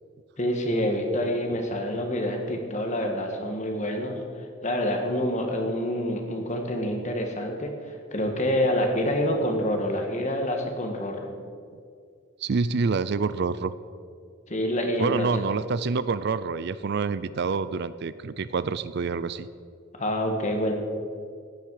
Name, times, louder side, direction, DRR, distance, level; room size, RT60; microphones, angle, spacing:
voice 1, 0.4-4.2 4.6-11.3 14.5-15.4 19.9-20.7, equal, 35° left, 3 dB, 1.7 m, -27 dB
voice 2, 12.4-13.7 15.0-19.5, right 4 dB, 55° right, 15 dB, 0.4 m, -27 dB
15.5 x 10.5 x 4.9 m, 2.3 s
head